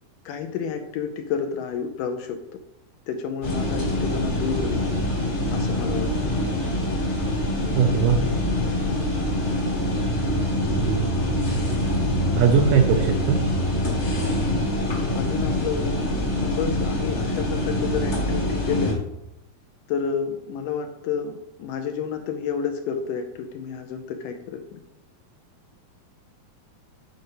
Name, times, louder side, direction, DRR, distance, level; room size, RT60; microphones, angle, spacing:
voice 1, 0.3-2.6 3.1-4.8 5.5-6.3 8.8-9.1 15.1-16.0 16.4-19.0 19.9-24.8, left 6 dB, 75° left, 6 dB, 2.1 m, -30 dB
sound 1, 3.4-18.9, left 1 dB, 35° left, 1.1 m, -25 dB
voice 2, 7.8-8.2 10.8-11.1 12.3-13.4, right 7 dB, 80° right, 5 dB, 1.9 m, -20 dB
9.2 x 5.2 x 5.6 m, 0.85 s
omnidirectional pair, 4.3 m